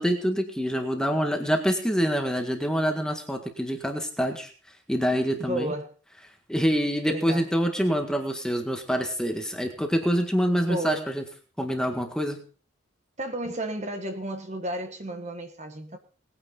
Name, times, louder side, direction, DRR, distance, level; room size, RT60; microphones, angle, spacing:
voice 1, 0.0-4.5 4.9-5.7 6.5-11.2 11.6-12.4, equal, 5° left, 4 dB, 1.7 m, -26 dB
voice 2, 5.4-5.9 7.1-7.5 10.7-11.1 13.2-16.0, right 1 dB, 35° right, 6 dB, 1.4 m, -32 dB
20.0 x 9.7 x 4.0 m, 0.40 s
head